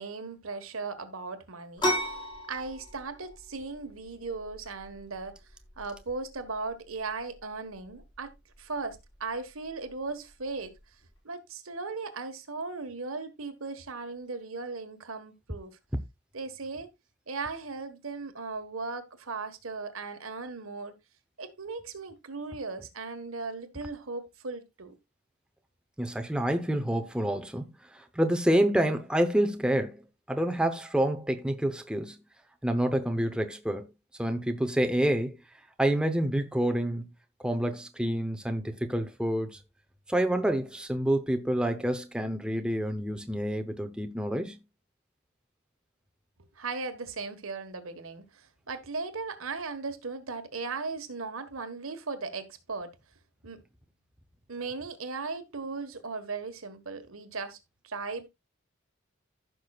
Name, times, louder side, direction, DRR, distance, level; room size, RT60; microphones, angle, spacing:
voice 1, 0.0-1.9 2.5-5.4 5.8-8.3 8.6-10.7 11.2-15.8 16.3-16.9 17.3-20.9 21.4-25.0 46.6-52.9 53.4-53.6 54.5-57.6 57.8-58.3, right 4 dB, 85° right, 1.5 m, -37 dB
sound 1, 1.8-11.2, equal, 20° left, 4.2 m, -38 dB
voice 2, 26.0-27.7 27.9-30.0 30.3-32.2 32.6-33.9 34.2-35.4 35.8-37.0 37.4-39.6 40.1-44.6, right 1 dB, 5° right, 0.8 m, -28 dB
15.0 x 6.1 x 2.4 m
head